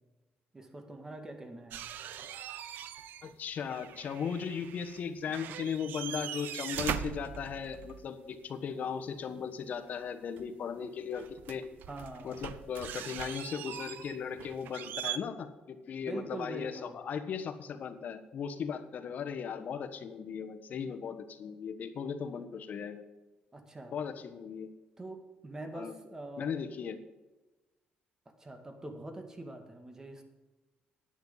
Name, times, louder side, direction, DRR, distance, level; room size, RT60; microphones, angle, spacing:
voice 1, 0.5-1.9 11.9-12.5 16.0-17.0 23.5-24.0 25.0-26.5 28.4-30.2, right 2 dB, 20° right, 5 dB, 2.1 m, -44 dB
sound 1, 1.7-3.3 3.6-5.0 5.3-8.1 10.4-10.5 11.1-15.2, right 10 dB, 80° right, 0.7 m, -41 dB
voice 2, 3.2-11.6 12.2-23.0 23.9-24.7 25.7-25.9 26.4-27.0, left 7 dB, 55° left, 7 dB, 1.3 m, -37 dB
10.5 x 9.6 x 5.6 m, 1.1 s
cardioid pair, 110°, 3 cm